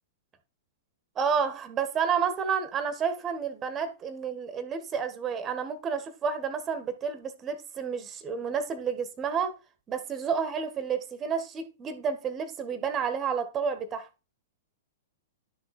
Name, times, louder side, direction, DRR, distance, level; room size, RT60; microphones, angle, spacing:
voice 1, 1.2-9.6 9.9-14.1, right 6 dB, 20° right, 1.6 m, -30 dB
12.0 x 6.5 x 4.3 m
figure-of-eight pair, 105°, 0 cm